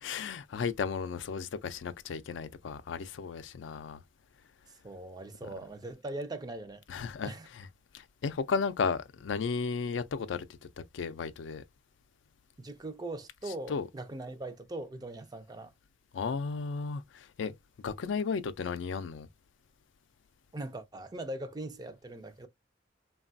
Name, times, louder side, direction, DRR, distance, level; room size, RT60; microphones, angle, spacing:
voice 1, 0.0-4.0 6.9-7.7 7.9-10.4 10.9-11.6 13.7-13.9 16.1-17.5 17.8-19.3, left 5 dB, 90° left, 0.4 m, -34 dB
voice 2, 4.8-6.8 7.2-7.5 12.6-15.7 20.5-22.5, right 2 dB, 20° right, 0.4 m, -40 dB
3.2 x 2.2 x 2.5 m
head